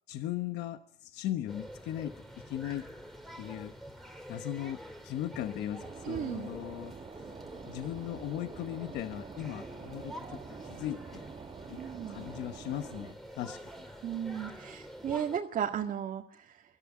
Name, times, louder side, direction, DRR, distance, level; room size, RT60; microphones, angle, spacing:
voice 1, 0.1-2.9 3.4-3.7 4.3-6.9 7.6-11.2 11.7-11.8 12.1-13.7, left 12 dB, 80° left, 9 dB, 1.1 m, -38 dB
sound 1, 1.5-15.4, equal, ahead, 3.1 m, -47 dB
sound 2, 5.8-13.1, right 5 dB, 35° right, 1.7 m, -47 dB
voice 2, 6.0-6.5 11.8-12.2 14.0-16.6, right 8 dB, 50° right, 0 dB, 1.9 m, -35 dB
23.5 x 14.5 x 9.8 m, 0.70 s
cardioid pair, 110°, 17 cm